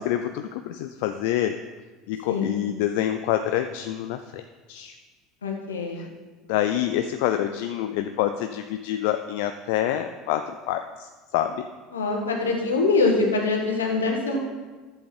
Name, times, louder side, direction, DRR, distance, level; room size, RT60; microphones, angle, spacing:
voice 1, 0.0-1.6 2.1-4.4 4.7-4.9 6.0-6.1 6.5-11.7, left 11 dB, 65° left, 8 dB, 0.4 m, -27 dB
voice 2, 2.3-2.6 5.4-6.1 11.9-14.4, left 3 dB, 85° left, 1 dB, 1.6 m, -24 dB
11.0 x 8.0 x 4.4 m, 1.3 s
hypercardioid pair, 75°, 0 cm